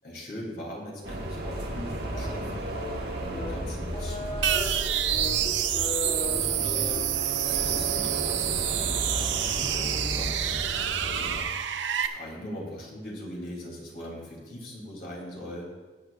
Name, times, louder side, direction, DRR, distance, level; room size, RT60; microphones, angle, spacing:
voice 1, 0.0-2.7 3.2-4.5 5.1-5.5 6.1-6.9 7.4-10.4 11.1-11.5 12.0-15.7, equal, 55° left, -3 dB, 3.1 m, -40 dB
sound 1, 1.0-11.4, right 1 dB, 60° right, 1.4 m, -35 dB
sound 2, 2.1-8.6, equal, 35° left, 1.1 m, -36 dB
sound 3, 4.4-12.1, right 11 dB, 80° right, 0.6 m, -28 dB
17.5 x 9.1 x 2.5 m, 1.3 s
head